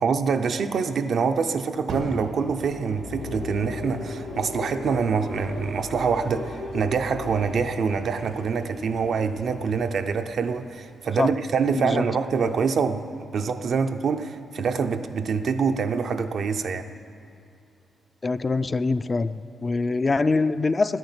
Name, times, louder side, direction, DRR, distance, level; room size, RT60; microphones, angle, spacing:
voice 1, 0.0-13.1 13.3-16.9, right 5 dB, 60° right, 8 dB, 0.6 m, -25 dB
Fire, 1.9-4.7 5.5-5.6, right 1 dB, 90° right, 2.1 m, -38 dB
sound 1, 2.5-11.0, left 3 dB, 85° left, 3.5 m, -38 dB
voice 2, 18.2-21.0, left 3 dB, 30° left, 12 dB, 0.3 m, -24 dB
11.0 x 8.9 x 9.6 m, 2.8 s
cardioid pair, 125°, 0 cm